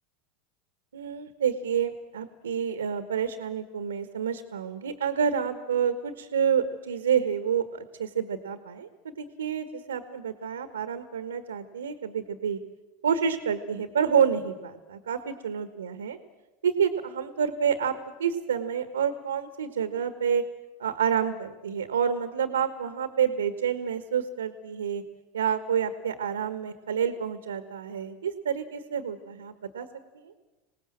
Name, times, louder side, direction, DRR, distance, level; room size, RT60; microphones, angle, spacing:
voice 1, 0.9-12.6 13.0-16.2 16.6-20.4 20.8-25.0 25.3-29.9 30.1-30.3, right 7 dB, 80° right, 10 dB, 1.6 m, -28 dB
26.0 x 18.5 x 7.6 m, 1.1 s
hypercardioid pair, 85°, 0 cm